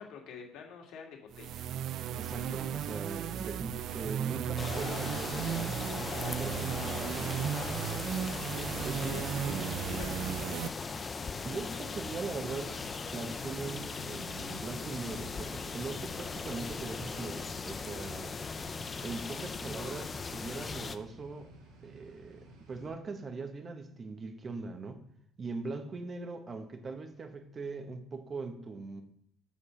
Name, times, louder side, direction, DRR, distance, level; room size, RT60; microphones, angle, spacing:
voice 1, 0.0-1.7 6.1-6.3 7.5-8.1 8.7-9.3 9.9-10.6, left 6 dB, 70° left, 1 dB, 2.3 m, -48 dB
sound 1, 1.3-10.7, right 9 dB, 60° right, 0.5 m, -35 dB
voice 2, 2.2-5.7 6.4-6.8 7.2-7.5 8.8-9.9 11.4-12.8 13.1-18.3 19.0-21.5 21.8-25.0 25.4-29.0, right 3 dB, 30° right, 6 dB, 1.4 m, -41 dB
sound 2, 4.6-21.0, left 4 dB, 25° left, 0.7 m, -38 dB
sound 3, 11.7-22.9, right 2 dB, 80° right, 2.7 m, -56 dB
7.3 x 6.6 x 5.2 m, 0.73 s
supercardioid pair, 105°, 0 cm